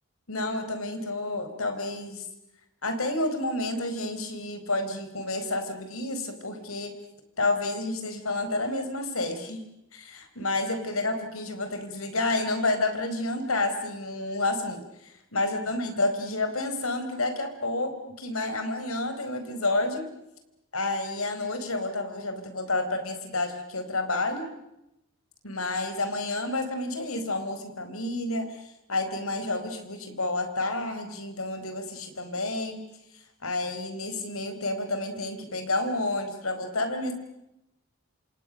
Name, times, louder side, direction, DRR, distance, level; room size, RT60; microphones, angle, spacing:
voice 1, 0.3-2.2 2.8-6.9 7.4-9.6 9.9-20.1 20.7-24.5 25.4-32.8 33.4-37.1, left 2 dB, 85° left, 8 dB, 4.5 m, -30 dB
28.5 x 27.0 x 6.5 m, 0.87 s
head